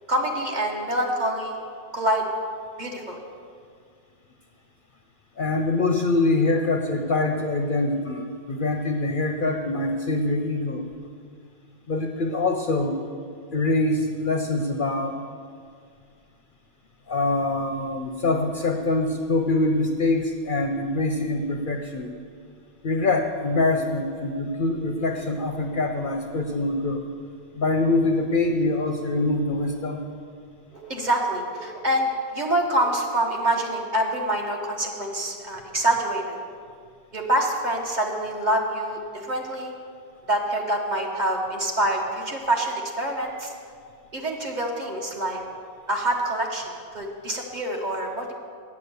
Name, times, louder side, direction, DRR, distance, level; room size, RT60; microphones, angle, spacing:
voice 1, 0.1-1.6 1.9-2.2 2.8-3.2 30.8-32.1 32.3-36.4 37.1-39.7 40.3-43.5 44.1-45.4 45.9-48.3, right 1 dB, 40° right, 0 dB, 1.3 m, -26 dB
voice 2, 5.4-10.9 11.9-13.0 13.5-15.2 17.1-22.1 22.8-27.0 27.5-30.0, left 2 dB, 55° left, 4 dB, 0.7 m, -24 dB
8.4 x 8.3 x 6.9 m, 2.2 s
omnidirectional pair, 1.2 m